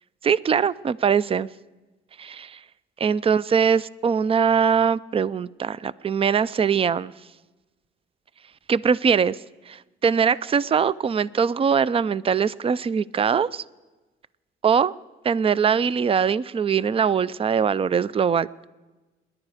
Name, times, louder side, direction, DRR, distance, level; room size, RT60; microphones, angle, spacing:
voice 1, 0.2-1.5 2.2-2.6 3.0-7.1 8.7-9.4 9.7-13.6 14.6-14.9 15.2-18.5, right 7 dB, 30° right, 20 dB, 0.4 m, -22 dB
27.0 x 10.5 x 5.0 m, 1.2 s
cardioid pair, 90°, 20 cm